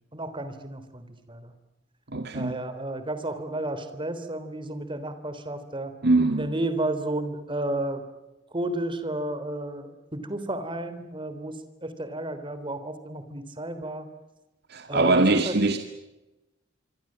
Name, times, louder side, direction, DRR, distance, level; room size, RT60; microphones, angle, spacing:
voice 1, 0.0-1.5 2.3-5.9 6.3-8.0 8.5-14.1 14.9-15.6, right 1 dB, 25° right, 11 dB, 3.5 m, -32 dB
voice 2, 2.1-2.6 6.0-6.5 14.7-15.8, right 2 dB, 60° right, 7 dB, 2.1 m, -22 dB
26.0 x 25.5 x 7.6 m, 1.0 s
head